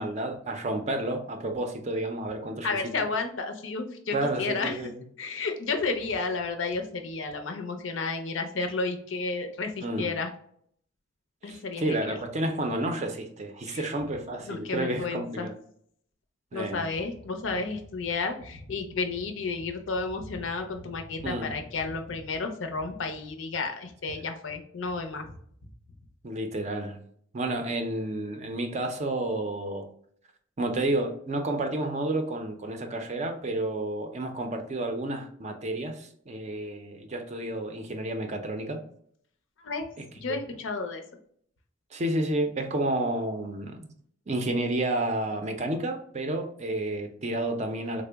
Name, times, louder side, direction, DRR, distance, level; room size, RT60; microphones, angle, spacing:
voice 1, 0.0-2.7 4.1-5.0 9.8-10.1 11.4-15.5 16.5-16.9 21.2-21.6 26.2-27.0 27.3-29.9 30.6-38.8 40.3-40.4 41.9-43.9 44.3-48.0, right 1 dB, 35° right, 0.4 m, -30 dB
voice 2, 2.6-4.8 5.2-10.3 11.4-12.2 13.7-13.9 14.4-15.5 16.5-25.4 39.6-39.9 40.2-41.0, left 4 dB, 70° left, 0.5 m, -32 dB
3.6 x 2.0 x 3.3 m
head